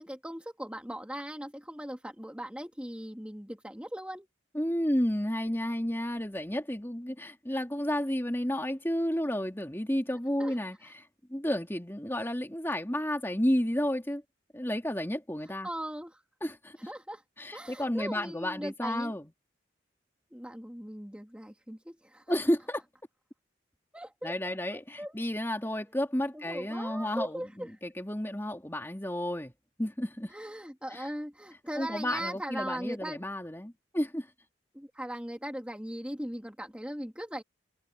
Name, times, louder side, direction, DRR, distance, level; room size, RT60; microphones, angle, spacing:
voice 1, 0.0-4.3 10.4-10.5 15.6-16.2 16.9-17.2 17.5-19.2 20.3-22.2 23.9-25.2 26.3-27.7 30.3-33.2 34.7-37.4, equal, 5° right, 2.1 m, -39 dB
voice 2, 4.5-14.2 14.5-15.7 16.4-16.8 17.4-19.2 22.3-22.8 24.2-29.5 29.8-30.3 30.9-31.0 31.8-34.3, equal, 10° left, 2.5 m, -31 dB
head